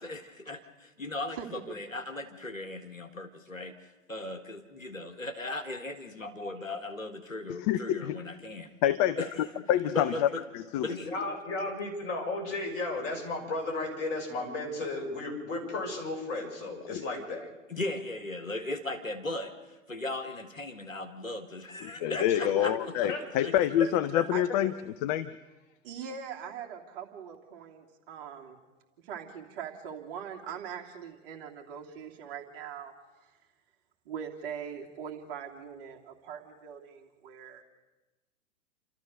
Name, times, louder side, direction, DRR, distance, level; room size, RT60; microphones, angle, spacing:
voice 1, 0.0-8.7 9.2-10.4 10.8-11.1 17.4-23.1 23.4-23.5, left 2 dB, 90° left, 7 dB, 1.8 m, -38 dB
voice 2, 7.7-8.2 8.8-9.2 9.7-10.3 10.5-10.9 16.9-17.0 22.0-24.7 25.0-25.3, left 11 dB, 30° left, 13 dB, 0.6 m, -27 dB
voice 3, 11.0-17.4 22.4-22.7 23.1-23.2, left 2 dB, 50° left, 0 dB, 6.5 m, -34 dB
voice 4, 23.4-23.9 24.3-24.4 25.8-28.6 29.0-32.9 34.0-37.6, right 7 dB, 45° right, 2 dB, 3.1 m, -42 dB
29.5 x 13.5 x 6.6 m, 1.1 s
figure-of-eight pair, 105°, 39 cm